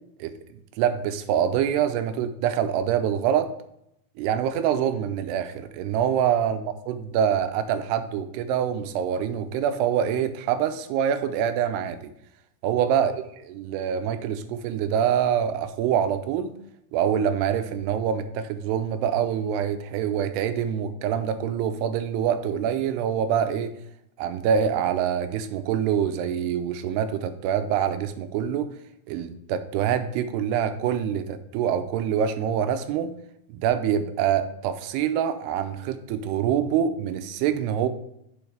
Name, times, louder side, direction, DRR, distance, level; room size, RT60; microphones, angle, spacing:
voice 1, 0.8-3.5 4.2-12.1 12.6-13.2 13.5-16.5 16.9-23.7 24.2-28.7 29.1-33.1 33.5-37.9, right 9 dB, 85° right, 10 dB, 2.6 m, -25 dB
7.0 x 6.5 x 4.9 m, 0.77 s
omnidirectional pair, 4.8 m